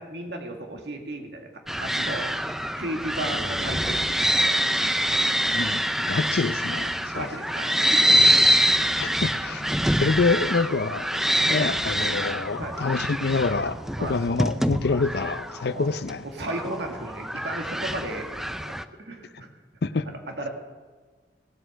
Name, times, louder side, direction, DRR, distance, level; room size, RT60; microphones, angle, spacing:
voice 1, 0.0-2.3 2.8-4.9 7.0-8.6 11.4-11.6 12.5-12.8 14.0-14.2 15.7-15.9 16.2-19.5 20.1-20.5, right 1 dB, 70° right, 2.0 m, -35 dB
sound 1, 1.7-18.8, equal, ahead, 0.4 m, -25 dB
voice 2, 6.1-7.3 9.0-11.1 11.5-16.2 19.8-20.0, left 4 dB, 60° left, 0.5 m, -26 dB
17.5 x 7.9 x 6.3 m
head